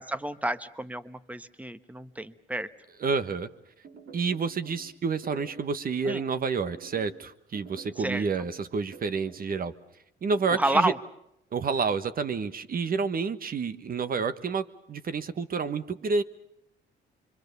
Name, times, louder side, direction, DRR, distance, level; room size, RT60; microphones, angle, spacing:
voice 1, 0.0-2.7 6.1-6.3 8.0-8.3 10.5-11.0, right 1 dB, 5° right, 12 dB, 1.2 m, -30 dB
voice 2, 3.0-3.5 4.1-9.7 10.2-10.9 11.5-16.2, right 5 dB, 45° right, 11 dB, 1.4 m, -29 dB
sound 1, 3.8-4.8 5.2-5.8 6.6-7.2 7.5-8.6 8.9-9.5 10.3-10.8, right 6 dB, 65° right, 6.6 m, -48 dB
25.5 x 24.0 x 6.9 m, 0.79 s
cardioid pair, 90°, 20 cm